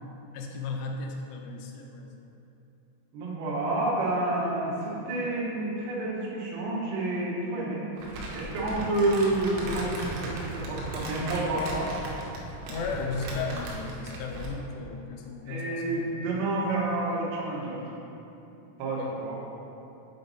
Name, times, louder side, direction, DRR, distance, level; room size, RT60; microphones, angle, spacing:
voice 1, 0.3-2.4 12.7-16.1 16.4-16.5 19.0-19.1, left 4 dB, 85° left, 1 dB, 2.9 m, -35 dB
voice 2, 3.1-7.8 8.1-11.9 15.5-17.8 18.8-19.4, right 2 dB, 70° right, -5 dB, 2.6 m, -29 dB
Crumpling crinkling, 8.0-14.6, right 2 dB, 85° right, 3.6 m, -37 dB
7.6 x 5.1 x 4.0 m, 2.9 s
omnidirectional pair, 5.7 m